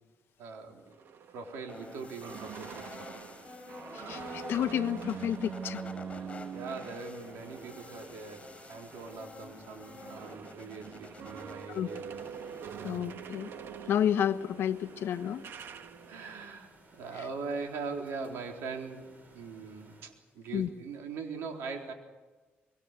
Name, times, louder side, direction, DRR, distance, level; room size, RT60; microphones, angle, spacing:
voice 1, 0.4-0.8 1.3-3.1 6.1-12.2 12.8-13.0 16.1-21.9, right 4 dB, 90° right, 2 dB, 4.0 m, -41 dB
sound 1, 0.9-9.3 9.6-16.5, right 7 dB, 70° right, 1.7 m, -45 dB
sound 2, 1.7-13.0, left 3 dB, 25° left, 5.6 m, -49 dB
voice 2, 3.9-5.8 11.7-11.9 12.8-13.5 13.9-15.5 17.1-17.2 20.5-20.7, left 9 dB, 75° left, 10 dB, 1.0 m, -31 dB
sound 3, 7.3-20.0, right 2 dB, 45° right, 6.7 m, -60 dB
24.5 x 23.5 x 6.8 m, 1.3 s
cardioid pair, 90°, 4 cm